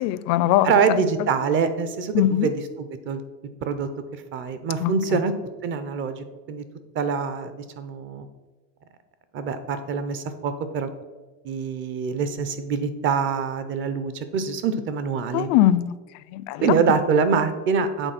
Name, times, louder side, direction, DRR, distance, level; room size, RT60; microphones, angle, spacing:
voice 1, 0.0-1.0 2.1-2.5 4.8-5.2 15.3-15.9 16.3-16.7, left 13 dB, 55° left, 15 dB, 0.4 m, -21 dB
voice 2, 0.6-3.2 3.6-5.3 5.6-6.6 6.9-8.3 9.3-10.9 11.4-15.5 16.6-18.1, right 5 dB, 40° right, 11 dB, 0.7 m, -25 dB
8.0 x 4.0 x 5.9 m, 1.2 s
cardioid pair, 165°, 32 cm